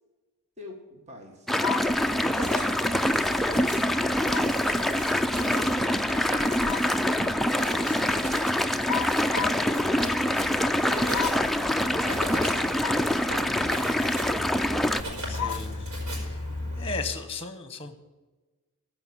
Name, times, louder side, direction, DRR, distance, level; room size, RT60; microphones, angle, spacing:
voice 1, 0.6-5.7 6.2-8.3 8.9-10.2 10.8-12.7 13.2-15.8, left 1 dB, 30° right, 1 dB, 1.6 m, -46 dB
sound 1, 1.5-15.0, left 1 dB, ahead, 0.4 m, -25 dB
sound 2, 1.6-2.0 4.3-4.6 6.4-7.0 8.9-9.7 11.1-11.5 12.8-13.1 13.6-13.7 15.4-15.7, left 8 dB, 85° left, 0.4 m, -33 dB
Writing, 1.8-17.2, equal, 90° right, 4.5 m, -37 dB
voice 2, 15.3-15.9 16.2-16.5 16.8-18.0, left 4 dB, 25° left, 9 dB, 1.3 m, -36 dB
15.0 x 5.5 x 8.7 m, 1.2 s
head